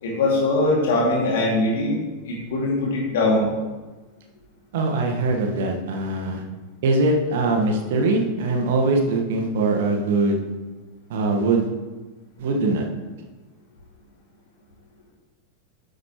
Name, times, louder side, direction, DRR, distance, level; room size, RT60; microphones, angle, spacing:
voice 1, 0.0-2.0 2.2-3.5, left 2 dB, 55° left, -3 dB, 2.4 m, -21 dB
voice 2, 4.7-6.4 6.8-10.4 11.1-11.7 12.4-12.8, right 2 dB, 55° right, 2 dB, 1.4 m, -22 dB
11.0 x 8.2 x 3.1 m, 1.2 s
figure-of-eight pair, 90°, 0 cm